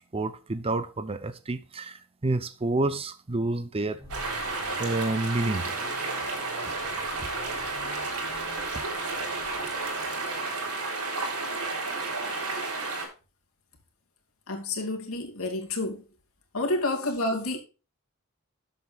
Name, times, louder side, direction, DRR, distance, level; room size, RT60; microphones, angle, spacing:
voice 1, 0.1-4.0 4.4-5.7 6.6-6.7 7.2-7.3 8.7-8.8, right 2 dB, 25° right, 0.6 m, -29 dB
sound 1, 4.0-10.4, left 1 dB, 15° left, 2.4 m, -50 dB
sound 2, 4.1-13.1, right 3 dB, 80° right, 3.6 m, -32 dB
voice 2, 14.5-16.0 16.5-17.6, left 2 dB, 65° left, 2.6 m, -29 dB
13.0 x 7.7 x 2.4 m
head